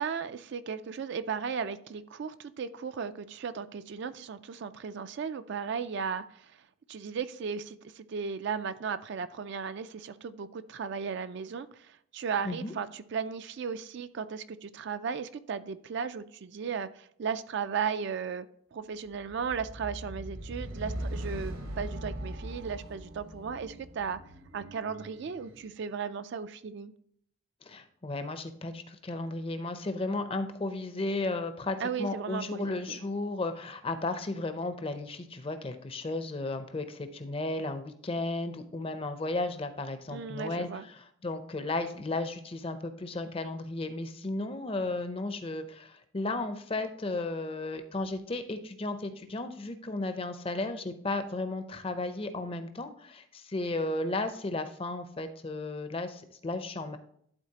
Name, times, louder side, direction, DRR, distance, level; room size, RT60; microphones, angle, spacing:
voice 1, 0.0-6.6 6.9-18.5 18.7-24.2 24.5-26.9 31.8-33.0 40.1-40.8, right 6 dB, 50° right, 12 dB, 0.3 m, -36 dB
sound 1, 19.2-25.7, right 1 dB, 70° right, 1.1 m, -40 dB
voice 2, 27.6-57.0, left 2 dB, 25° left, 9 dB, 0.5 m, -34 dB
11.5 x 4.0 x 2.8 m, 0.67 s
head